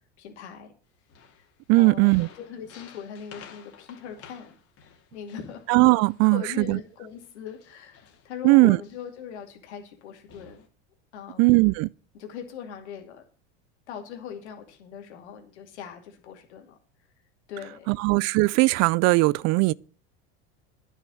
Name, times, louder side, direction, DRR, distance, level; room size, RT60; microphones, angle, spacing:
voice 1, 0.2-0.7 1.3-1.5 1.7-4.6 5.1-5.6 6.2-10.7 11.1-11.5 12.1-13.2 13.9-16.8 17.5-17.9, left 8 dB, 90° left, 2.6 m, -40 dB
sound 1, 1.0-6.6 7.1-9.2 9.9-10.0 10.3-10.7, left 7 dB, 45° left, 2.5 m, -52 dB
voice 2, 1.7-2.3 5.7-6.8 8.4-8.8 11.4-11.9 17.9-19.7, right 24 dB, 50° right, 0.4 m, -19 dB
10.0 x 6.3 x 7.7 m
supercardioid pair, 105°, 33 cm